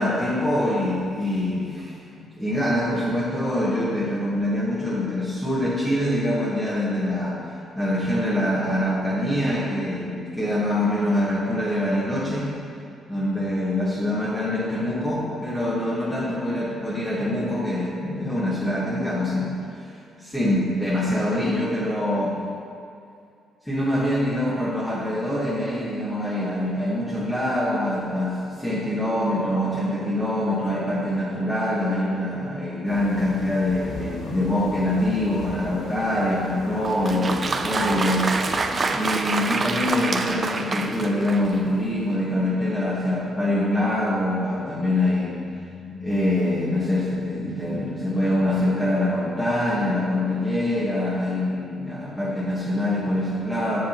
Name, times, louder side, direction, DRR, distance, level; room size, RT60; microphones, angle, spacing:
voice 1, 0.0-2.0 2.4-12.5 13.1-22.4 23.6-53.8, left 1 dB, 5° left, -9 dB, 1.4 m, -24 dB
sound 1, 32.8-38.8, left 2 dB, 75° left, 1.5 m, -39 dB
Applause, 36.8-41.7, right 3 dB, 35° right, 0.4 m, -26 dB
7.6 x 6.7 x 2.9 m, 2.4 s
cardioid pair, 90°, 0 cm